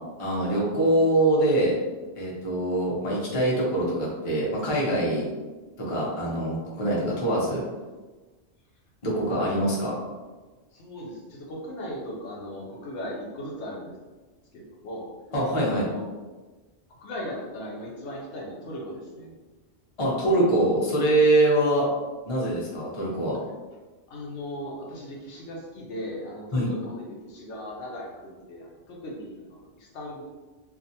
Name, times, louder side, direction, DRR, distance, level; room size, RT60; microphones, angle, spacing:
voice 1, 0.2-1.8 2.2-5.3 5.8-7.6 9.0-10.0 15.3-15.8 20.0-21.9 22.3-23.4 26.5-26.7, right 1 dB, 35° left, -5 dB, 0.7 m, -24 dB
voice 2, 10.7-14.0 14.5-15.1 15.7-16.0 17.0-19.3 24.1-30.2, equal, 90° left, -3 dB, 1.0 m, -38 dB
2.4 x 2.4 x 2.7 m, 1.3 s
omnidirectional pair, 1.1 m